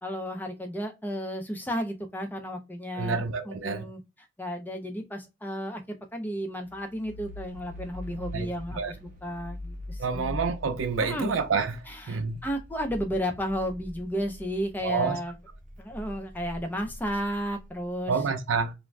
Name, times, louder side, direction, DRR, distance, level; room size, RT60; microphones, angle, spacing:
voice 1, 0.0-4.0 4.4-10.3 11.0-11.3 11.9-15.3 15.8-18.1, equal, 10° left, 0.4 m, -33 dB
voice 2, 2.9-3.9 8.3-8.5 8.7-8.9 10.0-12.4 14.8-15.2 18.1-18.7, right 5 dB, 85° right, 0.5 m, -28 dB
sound 1, 6.6-14.9 15.3-17.9, left 1 dB, 40° right, 0.6 m, -42 dB
2.5 x 2.2 x 3.1 m
head